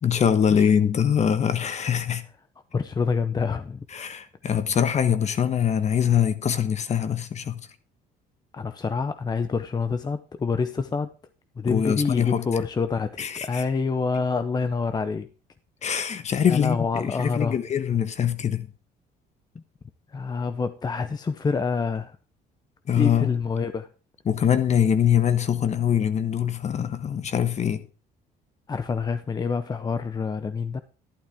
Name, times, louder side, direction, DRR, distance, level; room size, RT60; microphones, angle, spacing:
voice 1, 0.0-2.2 3.9-7.6 11.7-12.4 13.2-13.6 15.8-18.7 22.9-23.4 24.3-27.8, left 8 dB, 40° left, 1.3 m, -23 dB
voice 2, 2.7-3.8 8.5-11.1 11.6-15.3 16.5-17.6 19.5-19.6 20.1-22.2 23.0-23.9 28.7-30.8, left 5 dB, 25° left, 0.7 m, -27 dB
12.0 x 11.0 x 3.5 m
cardioid pair, 110°, 17 cm